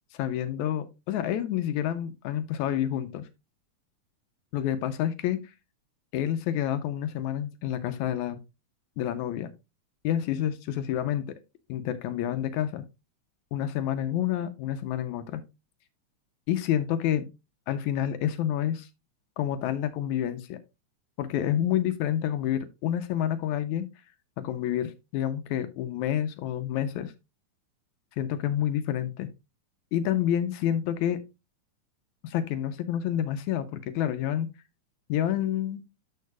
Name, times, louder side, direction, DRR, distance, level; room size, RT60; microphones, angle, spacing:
voice 1, 0.1-3.3 4.5-5.4 6.1-8.4 9.0-9.5 10.0-11.3 11.7-12.8 13.5-15.4 16.5-17.3 17.7-18.9 19.4-20.6 21.2-23.9 24.4-27.1 28.2-29.3 29.9-31.2 32.2-34.5 35.1-35.8, left 11 dB, 80° left, 1.9 m, -28 dB
13.0 x 4.7 x 2.3 m
omnidirectional pair, 3.6 m